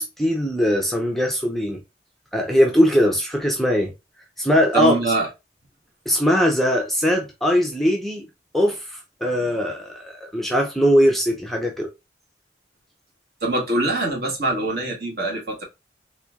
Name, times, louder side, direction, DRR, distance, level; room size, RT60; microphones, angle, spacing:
voice 1, 0.0-1.8 2.3-3.9 4.4-4.9 6.1-8.3 8.5-11.9, equal, ahead, 0.6 m, -20 dB
voice 2, 4.7-5.3 13.4-15.6, right 2 dB, 55° right, 1.6 m, -23 dB
4.2 x 2.7 x 2.2 m
head